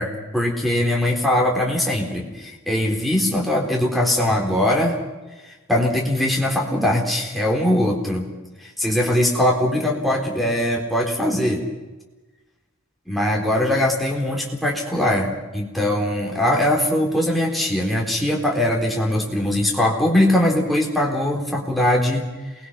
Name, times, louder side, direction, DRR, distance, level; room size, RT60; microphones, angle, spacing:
voice 1, 0.0-5.0 5.7-8.3 8.6-11.6 13.1-22.3, left 1 dB, ahead, -2 dB, 4.0 m, -21 dB
28.0 x 21.5 x 5.8 m, 1.2 s
head